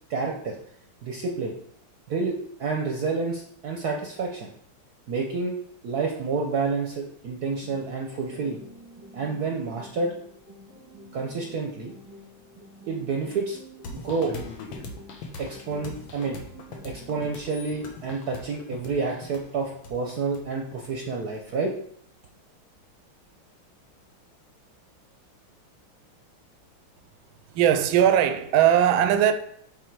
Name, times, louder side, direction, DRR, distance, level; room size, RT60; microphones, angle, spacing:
voice 1, 0.1-0.5 1.0-1.5 2.1-4.5 5.1-5.5 5.8-8.6 9.1-10.1 11.1-11.9 12.9-13.6 13.9-14.3 15.4-16.4 16.8-21.7, right 4 dB, 60° right, 1.1 m, -29 dB
sound 1, 7.5-17.5, equal, 15° right, 0.9 m, -49 dB
sound 2, 13.8-21.4, left 3 dB, 70° left, 1.8 m, -41 dB
voice 2, 27.5-29.3, right 10 dB, 80° right, 1.4 m, -19 dB
7.3 x 3.7 x 4.6 m
omnidirectional pair, 2.3 m